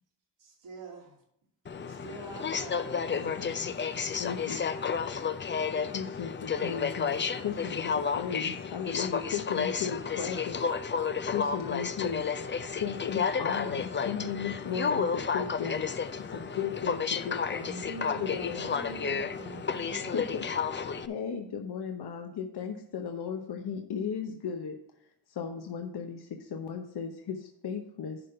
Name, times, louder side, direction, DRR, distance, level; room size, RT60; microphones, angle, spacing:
voice 1, 0.4-1.1 1.9-3.3, right 3 dB, 75° right, -1 dB, 2.6 m, -46 dB
Aircraft, 1.7-21.1, left 6 dB, 25° left, 0.5 m, -32 dB
voice 2, 3.1-3.9 4.2-4.7 5.9-10.6 11.3-15.9 16.2-17.6 18.2-18.8 19.9-24.8 25.3-28.2, left 7 dB, 60° left, 4 dB, 0.9 m, -36 dB
voice 3, 17.5-20.1, left 1 dB, 80° left, -10 dB, 3.1 m, -42 dB
11.0 x 3.7 x 5.6 m, 0.70 s
cardioid pair, 75°, 45 cm